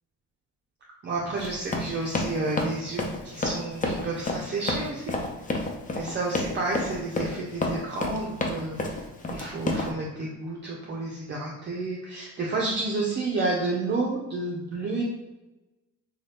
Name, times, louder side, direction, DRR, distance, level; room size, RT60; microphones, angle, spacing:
voice 1, 1.0-5.1 5.9-8.8 9.3-15.0, right 3 dB, 35° right, -3 dB, 0.5 m, -30 dB
Run, 1.4-9.9, left 2 dB, 25° left, 0.5 m, -29 dB
2.6 x 2.3 x 3.3 m, 1.1 s
cardioid pair, 90°, 30 cm